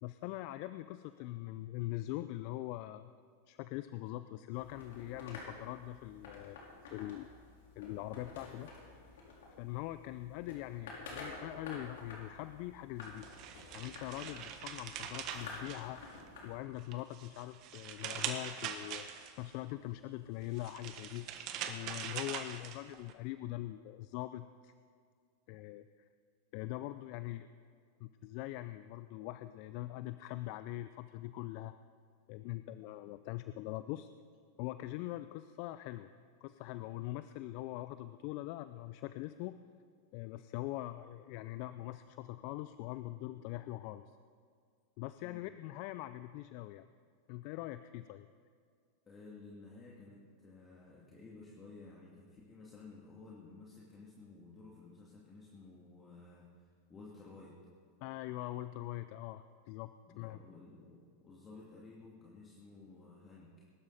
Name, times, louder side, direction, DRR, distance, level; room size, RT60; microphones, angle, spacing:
voice 1, 0.0-3.1 3.5-6.6 6.9-7.3 7.8-8.9 9.6-13.3 13.7-16.0 16.4-19.1 19.4-21.4 21.7-24.7 25.5-26.1 26.5-27.5 28.0-31.7 32.3-34.1 34.6-36.1 36.4-39.6 40.1-44.1 45.0-46.8 47.3-48.3 58.0-60.4, left 16 dB, 55° left, 12 dB, 0.4 m, -42 dB
sound 1, 4.5-16.6, left 3 dB, 70° left, 3.9 m, -51 dB
sound 2, 13.0-16.4 16.8-19.5 20.4-23.1, right 9 dB, 50° right, 1.4 m, -43 dB
voice 2, 49.1-57.5 60.1-63.5, left 3 dB, 25° left, -4 dB, 2.6 m, -54 dB
21.0 x 12.0 x 4.2 m, 2.1 s
hypercardioid pair, 95°, 0 cm